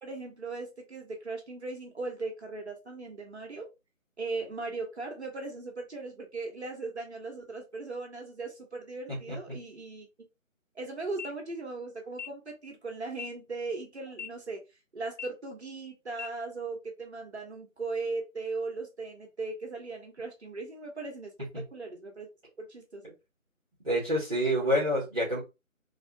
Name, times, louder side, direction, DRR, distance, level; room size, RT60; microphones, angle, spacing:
voice 1, 0.0-3.7 4.2-10.1 10.7-14.6 14.9-22.3 22.6-23.1, right 3 dB, 50° right, 2 dB, 1.0 m, -38 dB
sound 1, 11.1-11.3 12.1-12.3 13.1-13.3 14.1-14.3 15.1-15.3 16.1-16.3, left 6 dB, 60° left, 0.5 m, -40 dB
voice 2, 23.8-25.4, equal, 5° right, -23 dB, 1.1 m, -27 dB
3.4 x 2.6 x 2.6 m, 0.25 s
figure-of-eight pair, 170°, 41 cm